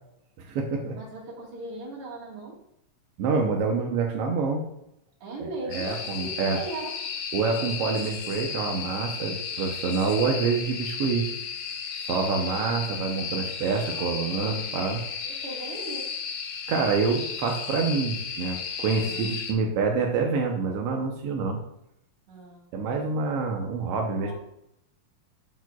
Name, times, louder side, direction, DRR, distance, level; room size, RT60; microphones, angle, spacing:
voice 1, 0.4-0.9 3.2-4.6 5.7-6.6 7.3-11.3 12.1-15.0 16.7-21.6 22.7-24.3, right 4 dB, 75° right, 1 dB, 1.4 m, -27 dB
voice 2, 0.9-2.6 5.2-6.9 12.3-12.7 13.6-14.2 15.2-16.1 18.8-19.3 22.3-22.7 24.2-24.3, right 2 dB, 50° right, -3 dB, 2.3 m, -39 dB
sound 1, 5.7-19.5, left 6 dB, 80° left, 2.4 m, -34 dB
12.0 x 4.7 x 2.3 m, 0.78 s
omnidirectional pair, 3.7 m